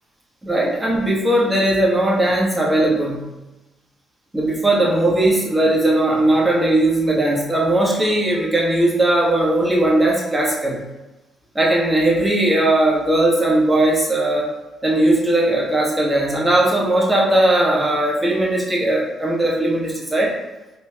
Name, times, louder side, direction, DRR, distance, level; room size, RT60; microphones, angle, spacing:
voice 1, 0.4-3.3 4.3-10.8 11.5-14.5 14.8-20.3, right 1 dB, 15° right, -4 dB, 1.5 m, -18 dB
4.2 x 3.2 x 2.9 m, 1.1 s
hypercardioid pair, 50°, 0 cm